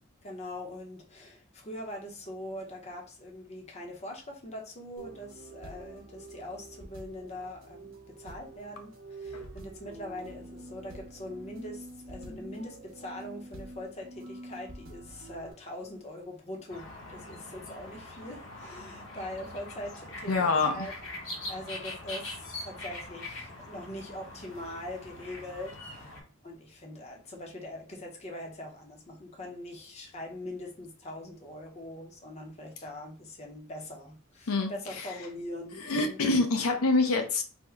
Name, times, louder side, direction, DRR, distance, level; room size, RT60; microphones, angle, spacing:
voice 1, 0.2-20.9 21.5-36.4, left 1 dB, 30° left, 0.7 m, -42 dB
sound 1, 5.0-15.5, right 1 dB, 70° right, 0.8 m, -46 dB
sound 2, 16.7-26.2, left 2 dB, 60° left, 0.9 m, -43 dB
voice 2, 20.3-20.9 34.5-34.7 35.9-37.4, left 3 dB, 90° left, 0.6 m, -26 dB
3.4 x 2.1 x 3.3 m
head